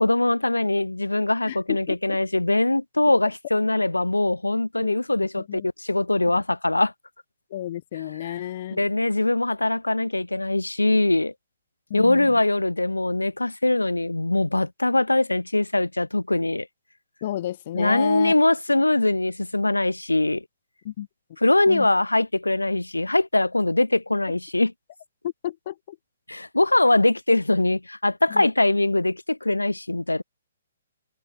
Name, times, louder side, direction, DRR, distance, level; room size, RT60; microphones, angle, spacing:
voice 1, 0.0-6.9 8.2-8.3 8.7-11.3 11.9-16.7 17.7-20.4 21.4-24.7 26.3-30.2, left 2 dB, 85° left, 2.4 m, -22 dB
voice 2, 1.5-2.2 4.8-5.0 5.4-5.7 7.5-8.9 11.9-12.4 17.2-18.3 20.8-21.1 21.7-21.9 25.2-26.0 28.3-28.5, left 12 dB, 45° left, 2.2 m, -32 dB
figure-of-eight pair, 125°, 0 cm